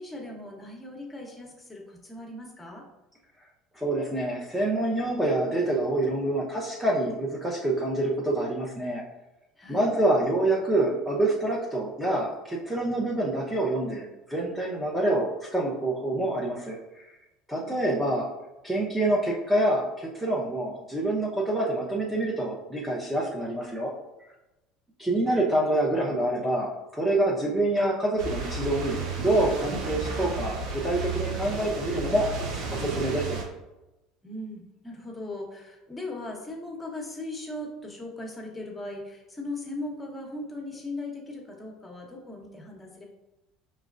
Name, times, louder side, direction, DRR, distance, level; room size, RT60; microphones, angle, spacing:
voice 1, 0.0-2.9 9.6-10.0 17.6-18.2 34.2-43.0, left 2 dB, 15° left, 0 dB, 1.0 m, -38 dB
voice 2, 3.7-9.0 9.7-17.0 17.5-18.3 18.6-23.9 25.0-33.4, right 1 dB, 10° right, -4 dB, 0.7 m, -26 dB
sound 1, 28.2-33.4, right 3 dB, 65° right, 0.8 m, -32 dB
4.9 x 3.2 x 2.5 m, 1.0 s
hypercardioid pair, 80°, 0 cm